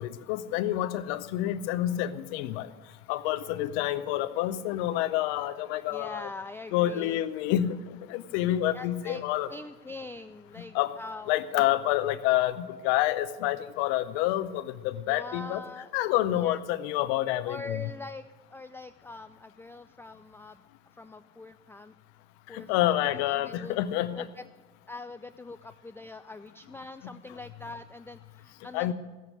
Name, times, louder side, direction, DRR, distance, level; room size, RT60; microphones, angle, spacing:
voice 1, 0.0-2.7 3.1-6.3 6.7-7.8 8.1-9.5 10.7-10.9 11.3-15.6 15.9-17.8 22.5-24.3 28.7-28.9, left 13 dB, 85° left, 12 dB, 0.8 m, -28 dB
voice 2, 5.9-7.2 8.7-9.2 9.5-11.3 15.1-15.9 16.3-16.6 17.5-18.2 18.5-20.7 20.9-21.9 22.5-23.8 24.1-24.4 24.9-28.9, left 3 dB, 5° left, 9 dB, 0.4 m, -43 dB
15.5 x 7.4 x 7.9 m, 1.2 s
supercardioid pair, 85°, 32 cm